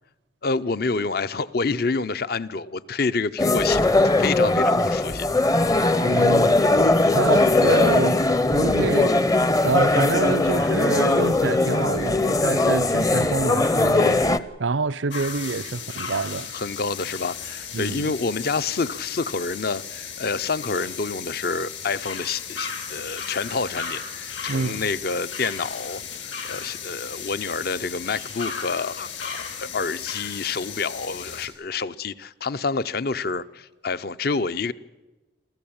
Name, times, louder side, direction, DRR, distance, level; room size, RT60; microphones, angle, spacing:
voice 1, 0.4-5.3 16.5-34.7, left 4 dB, 55° left, 0.6 m, -28 dB
sound 1, 3.4-14.4, left 2 dB, 20° left, 0.6 m, -20 dB
voice 2, 6.0-6.6 7.1-8.3 8.5-9.3 9.6-14.2 14.6-16.5 17.7-18.1 24.5-24.9, right 4 dB, 85° right, 0.6 m, -26 dB
sound 2, 15.1-31.5, left 6 dB, 75° left, 3.9 m, -35 dB
27.0 x 14.0 x 8.8 m
head